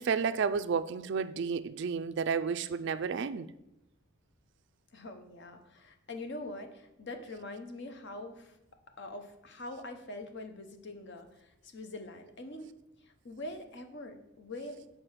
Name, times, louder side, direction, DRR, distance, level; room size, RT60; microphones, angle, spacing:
voice 1, 0.0-3.5, right 6 dB, 55° right, 14 dB, 0.3 m, -31 dB
voice 2, 4.9-8.5 9.0-12.7 13.2-14.8, left 2 dB, 55° left, 6 dB, 0.9 m, -43 dB
6.8 x 4.8 x 5.6 m, 0.86 s
head